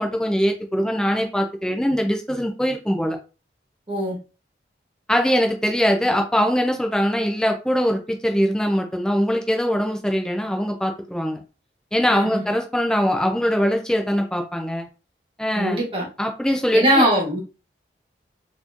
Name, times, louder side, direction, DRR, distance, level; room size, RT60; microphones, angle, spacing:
voice 1, 0.0-3.2 5.1-11.4 11.9-14.8 15.4-15.8 16.2-17.1, equal, 5° left, 3 dB, 0.5 m, -22 dB
voice 2, 12.1-12.4 15.5-16.1 16.7-17.4, equal, 30° right, -3 dB, 1.6 m, -21 dB
4.1 x 3.0 x 2.5 m, 0.33 s
head